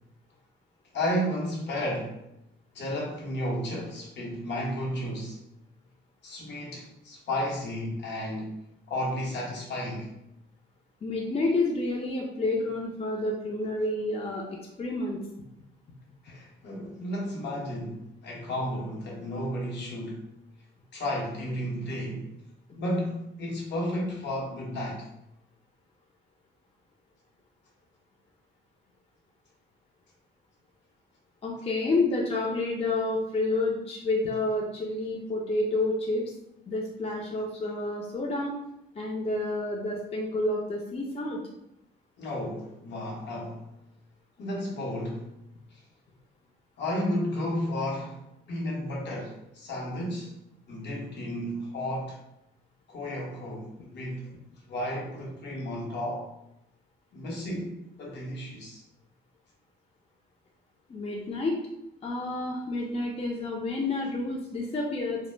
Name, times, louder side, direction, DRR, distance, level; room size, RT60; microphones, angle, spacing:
voice 1, 0.9-2.2 2.7-5.4 6.2-8.6 8.9-10.1 16.2-20.2 20.9-22.3 22.7-25.1 42.2-43.7 44.4-45.3 45.7-45.8 46.8-48.2 48.5-50.3 50.7-52.2 52.9-54.3 54.7-56.3 57.1-58.8, equal, 60° left, -1 dB, 0.8 m, -33 dB
voice 2, 11.0-14.4 14.8-15.2 31.4-36.2 36.7-38.6 39.0-41.4 60.9-61.6 62.0-65.2, left 2 dB, 30° left, -2 dB, 0.5 m, -29 dB
2.1 x 2.0 x 3.1 m, 0.83 s
cardioid pair, 90°, 20 cm